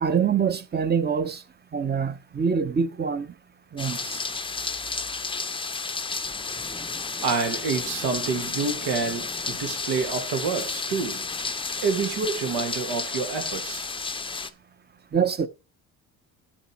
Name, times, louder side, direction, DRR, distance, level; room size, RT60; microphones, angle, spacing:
voice 1, 0.0-1.4 1.7-3.3 3.7-4.3 15.1-15.5, right 6 dB, 25° right, 0.9 m, -25 dB
sound 1, 3.8-14.5, left 4 dB, 15° left, 0.7 m, -32 dB
voice 2, 7.2-11.3 11.8-13.9, right 5 dB, 80° right, 2.1 m, -28 dB
11.0 x 5.2 x 4.5 m
supercardioid pair, 90°, 38 cm